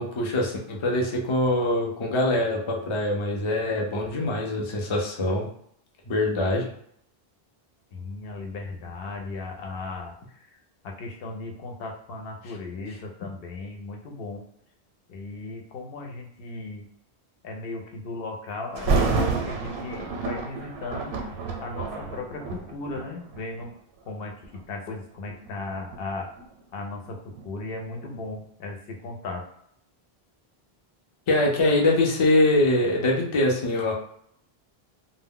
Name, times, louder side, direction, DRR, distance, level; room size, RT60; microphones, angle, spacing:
voice 1, 0.0-5.5 6.1-6.7 31.3-33.9, left 1 dB, 40° left, -1 dB, 0.4 m, -23 dB
voice 2, 7.9-10.5 10.8-14.4 15.1-16.9 17.4-21.1 21.6-23.7 24.1-24.3 24.7-26.3 26.7-27.2 27.4-29.4, left 3 dB, 70° left, 1 dB, 0.8 m, -36 dB
Thunder, 18.8-23.7 24.4-24.6 25.3-28.1 28.4-28.5, right 4 dB, 80° right, 0.8 m, -29 dB
2.1 x 2.0 x 3.6 m, 0.68 s
omnidirectional pair, 1.0 m